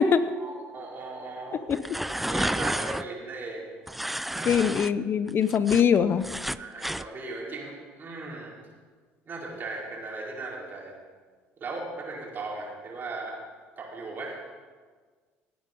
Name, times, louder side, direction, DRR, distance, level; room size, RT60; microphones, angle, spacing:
voice 1, 0.3-3.7 4.3-4.7 6.6-8.5 9.2-10.9 11.6-13.4 13.8-14.4, right 3 dB, 40° right, -3 dB, 4.6 m, -37 dB
sound 1, 1.7-3.0 3.9-4.9 5.3-7.1, right 1 dB, 5° right, 0.4 m, -31 dB
voice 2, 4.5-6.2, left 7 dB, 45° left, 13 dB, 0.6 m, -22 dB
17.5 x 9.1 x 5.3 m, 1.5 s
supercardioid pair, 90°, 5 cm